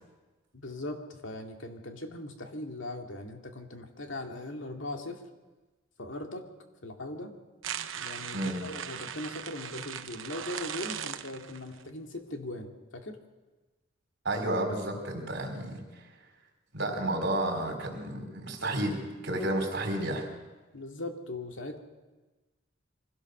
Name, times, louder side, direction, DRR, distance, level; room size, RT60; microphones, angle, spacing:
voice 1, 0.5-5.2 6.0-6.4 6.8-7.3 8.0-13.2 20.7-21.8, left 1 dB, 70° left, 3 dB, 2.3 m, -39 dB
sound 1, 7.6-11.8, right 8 dB, 80° right, 0.9 m, -39 dB
voice 2, 14.2-15.8 16.7-20.3, right 1 dB, 60° right, 2 dB, 4.2 m, -31 dB
24.0 x 16.5 x 6.6 m, 1.2 s
head